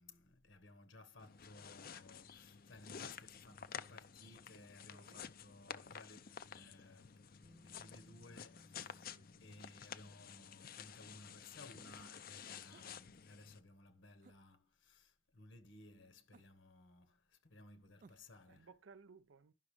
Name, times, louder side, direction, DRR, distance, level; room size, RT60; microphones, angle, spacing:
voice 1, 0.0-9.1 9.4-18.7, left 2 dB, 70° left, 1.4 m, -60 dB
sound 1, 1.2-13.6, left 7 dB, 45° left, 0.5 m, -52 dB
voice 2, 4.9-5.2 8.9-9.3 18.5-19.5, right 5 dB, 75° right, 0.6 m, -61 dB
Bass guitar, 7.4-13.5, left 1 dB, 10° right, 0.7 m, -69 dB
sound 2, 12.7-13.0 14.2-14.4 16.3-16.7 18.0-18.4, right 4 dB, 40° right, 0.4 m, -64 dB
11.5 x 6.2 x 3.2 m
head